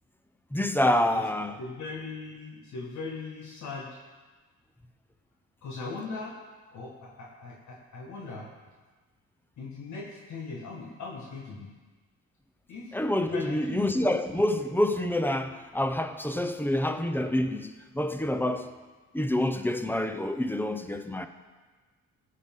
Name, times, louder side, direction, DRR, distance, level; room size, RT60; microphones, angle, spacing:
voice 1, 0.5-1.6 12.9-18.7 19.1-21.3, left 1 dB, 5° left, 0.7 m, -27 dB
voice 2, 1.6-4.0 5.6-6.4 6.7-8.5 9.6-11.7 12.7-12.9 13.3-13.9, left 4 dB, 70° left, 1.7 m, -39 dB
15.5 x 8.4 x 3.8 m
cardioid pair, 90°, 30 cm